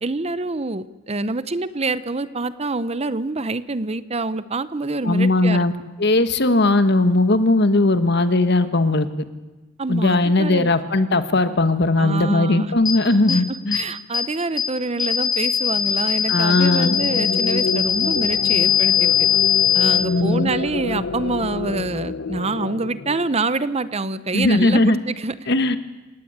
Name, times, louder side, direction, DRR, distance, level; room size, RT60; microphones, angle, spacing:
voice 1, 0.0-5.7 9.8-10.7 12.0-12.7 13.3-19.1 19.7-25.5, right 3 dB, 30° right, 15 dB, 0.8 m, -26 dB
voice 2, 5.0-5.7 6.0-9.1 9.9-13.8 16.3-17.0 20.1-20.5 24.3-25.0 25.5-25.8, left 2 dB, 60° left, 11 dB, 1.5 m, -18 dB
sound 1, 12.9-13.0 13.3-13.4 13.7-13.8 14.1-14.2 14.6-14.7 15.0-20.0, left 10 dB, 20° left, 3.7 m, -19 dB
sound 2, 16.3-23.8, left 3 dB, 75° left, 0.8 m, -28 dB
27.5 x 18.0 x 8.8 m, 1.2 s
head